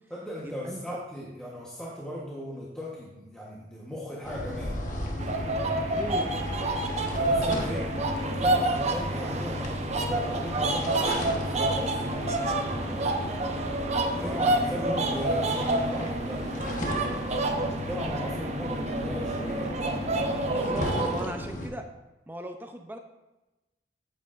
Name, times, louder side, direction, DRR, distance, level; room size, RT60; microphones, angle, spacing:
voice 1, 0.1-4.8 7.1-8.0 8.2-13.1 14.1-16.6 17.7-19.8 20.4-21.3, left 1 dB, 5° left, -6 dB, 1.0 m, -37 dB
voice 2, 0.6-1.0 5.9-6.5 14.2-14.5 20.4-21.9 22.3-23.0, right 1 dB, 10° right, 5 dB, 0.5 m, -38 dB
sound 1, 4.2-21.7, left 1 dB, 45° left, 1.1 m, -35 dB
sound 2, 5.2-21.2, right 2 dB, 40° right, 0.8 m, -29 dB
9.1 x 8.3 x 2.5 m, 1.0 s
head